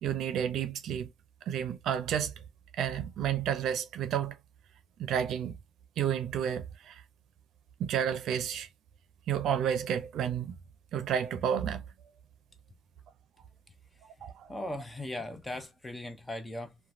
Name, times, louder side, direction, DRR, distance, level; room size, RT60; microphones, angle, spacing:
voice 1, 0.0-1.1 1.5-2.3 2.8-4.3 5.0-5.5 6.0-7.0 7.8-8.7 9.3-10.5 10.9-11.8 14.2-14.5, right 9 dB, 75° right, 0.5 m, -31 dB
voice 2, 14.5-16.8, left 1 dB, 15° left, 0.8 m, -38 dB
2.9 x 2.3 x 2.6 m
cardioid pair, 90°, 0 cm